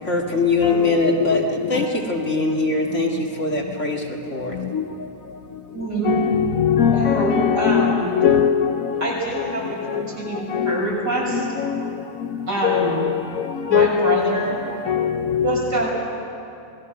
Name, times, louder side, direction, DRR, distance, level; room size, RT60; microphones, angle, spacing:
voice 1, 0.0-4.6, left 3 dB, 40° left, 2.4 m, -22 dB
voice 2, 0.6-1.9 4.5-4.9 6.0-10.9 11.3-11.9 12.2-14.6 14.8-15.6, left 8 dB, 60° left, 1.0 m, -22 dB
voice 3, 5.7-6.1 6.9-8.1 9.0-11.5 12.5-13.0 13.7-14.5 15.4-15.9, right 2 dB, 65° right, 7.2 m, -25 dB
27.0 x 19.5 x 6.6 m
omnidirectional pair, 1.9 m